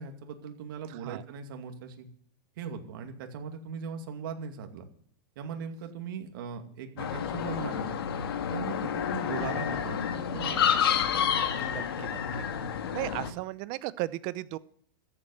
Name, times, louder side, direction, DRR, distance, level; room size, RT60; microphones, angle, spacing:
voice 1, 0.0-2.1 2.6-4.9 5.4-8.0 8.5-10.7, right 6 dB, 65° right, 5 dB, 2.4 m, -39 dB
sound 1, 7.0-13.3, left 8 dB, 90° left, 1.8 m, -29 dB
voice 2, 11.6-12.4 12.9-14.6, right 18 dB, 40° right, 17 dB, 0.7 m, -36 dB
14.0 x 7.8 x 9.7 m, 0.62 s
supercardioid pair, 150°, 12 cm